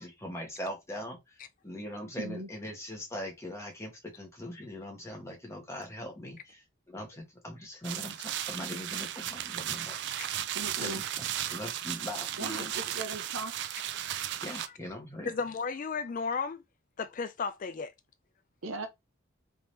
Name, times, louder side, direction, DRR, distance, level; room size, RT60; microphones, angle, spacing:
voice 1, 0.0-10.1 10.8-12.9 14.4-15.3, left 1 dB, 15° left, 1.1 m, -41 dB
voice 2, 2.2-2.5 10.5-11.0 12.4-13.5 18.6-18.9, right 2 dB, 85° right, 0.9 m, -38 dB
sound 1, 7.8-14.7, right 11 dB, 55° right, 0.4 m, -35 dB
voice 3, 15.2-16.6 17.0-17.9, left 5 dB, 40° left, 0.4 m, -34 dB
3.5 x 2.9 x 3.2 m
head